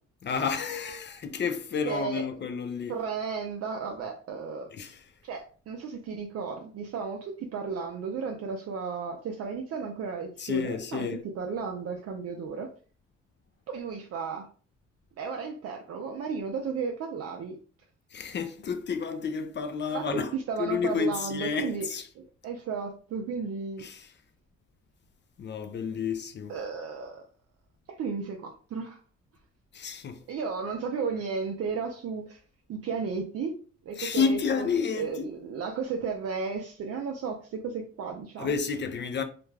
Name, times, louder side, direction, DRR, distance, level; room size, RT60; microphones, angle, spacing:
voice 1, 0.2-3.0 4.7-5.0 10.4-11.2 18.1-22.0 23.8-24.1 25.4-26.6 29.7-30.2 34.0-35.3 38.4-39.2, left 6 dB, 40° left, 0.4 m, -30 dB
voice 2, 1.8-2.2 2.9-4.7 5.2-11.1 11.4-12.7 13.7-14.5 15.2-17.6 19.9-21.9 22.1-23.8 26.5-27.2 27.9-29.0 30.3-32.4 32.7-33.5 33.8-34.7 34.9-38.6, right 5 dB, 55° right, 0.5 m, -34 dB
2.5 x 2.1 x 3.2 m
cardioid pair, 90°, 30 cm